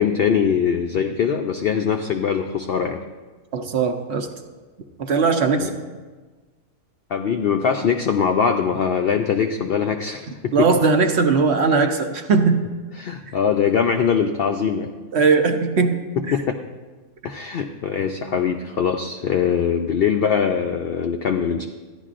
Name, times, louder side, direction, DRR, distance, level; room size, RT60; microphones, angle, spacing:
voice 1, 0.0-3.0 5.6-5.7 7.1-10.7 13.0-14.9 16.3-16.6 17.2-21.7, left 7 dB, 70° left, 5 dB, 0.5 m, -22 dB
voice 2, 3.5-4.3 5.0-5.7 10.5-12.7 15.1-16.0, right 4 dB, 55° right, 5 dB, 0.8 m, -19 dB
14.0 x 10.5 x 2.5 m, 1.3 s
omnidirectional pair, 1.5 m